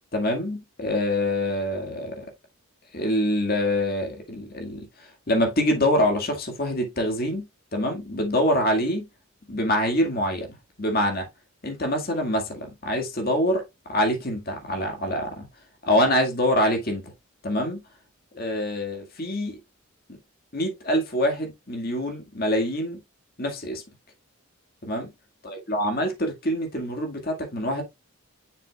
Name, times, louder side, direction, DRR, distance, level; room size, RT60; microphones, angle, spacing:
voice 1, 0.1-2.3 2.9-4.8 5.3-9.1 9.5-11.3 11.6-13.6 13.9-15.5 15.8-17.0 17.4-17.8 18.3-19.6 20.5-23.0 23.4-23.8 24.8-25.1 25.4-27.8, left 1 dB, 45° left, 2.0 m, -25 dB
7.1 x 6.6 x 2.4 m
head